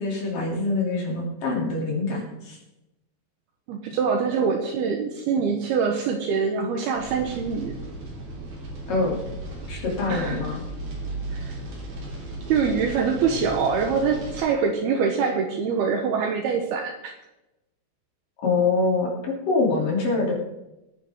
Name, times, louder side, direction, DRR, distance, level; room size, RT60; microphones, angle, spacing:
voice 1, 0.0-2.6 8.9-9.3 9.7-10.6 18.4-20.3, left 3 dB, 50° left, -2 dB, 4.3 m, -25 dB
voice 2, 3.7-7.7 10.1-10.4 11.3-11.6 12.5-17.1, right 5 dB, 70° right, 3 dB, 2.7 m, -24 dB
sound 1, 7.0-14.4, right 2 dB, 45° right, 4.3 m, -36 dB
18.5 x 10.0 x 3.7 m, 0.94 s
omnidirectional pair, 5.3 m